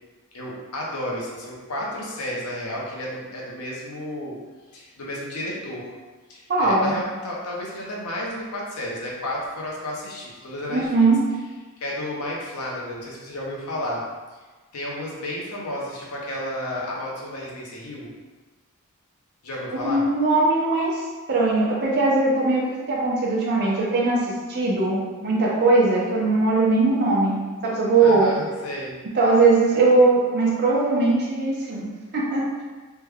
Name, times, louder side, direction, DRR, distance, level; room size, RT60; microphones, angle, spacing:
voice 1, 0.3-4.4 4.7-5.9 6.3-11.1 11.8-14.0 14.7-18.1 19.4-20.1 28.0-29.0, left 1 dB, 85° left, -4 dB, 0.8 m, -32 dB
voice 2, 6.5-6.9 10.7-11.2 19.8-21.0 21.3-27.4 27.6-28.3 29.1-31.9 32.1-32.6, right 3 dB, 50° right, -5 dB, 0.6 m, -20 dB
3.3 x 2.2 x 3.4 m, 1.3 s
head